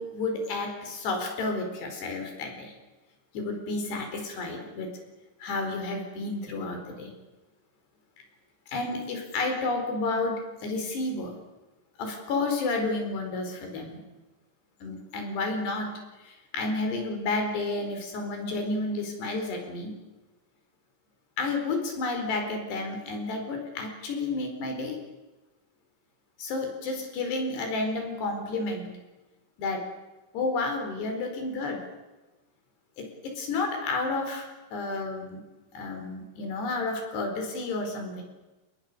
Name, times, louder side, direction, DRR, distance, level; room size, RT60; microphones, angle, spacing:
voice 1, 0.0-2.7 3.3-5.0 5.4-7.1 8.7-11.3 12.0-14.0 14.8-19.9 21.4-25.0 26.4-28.9 29.6-29.8 30.3-31.8 33.0-35.4 35.7-38.2, left 3 dB, 65° left, 4 dB, 6.5 m, -31 dB
30.0 x 21.0 x 6.9 m, 1.1 s
omnidirectional pair, 5.2 m